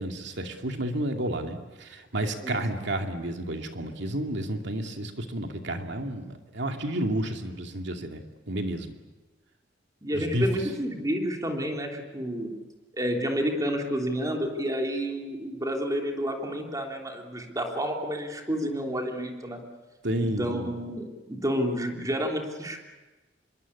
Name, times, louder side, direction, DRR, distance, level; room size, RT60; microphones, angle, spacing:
voice 1, 0.0-8.9 10.1-10.5 20.0-20.7, right 1 dB, 65° right, 4 dB, 2.5 m, -31 dB
voice 2, 10.0-12.5 12.9-19.6 20.2-22.8, equal, 20° right, 2 dB, 3.3 m, -30 dB
26.0 x 22.5 x 8.5 m, 1.2 s
head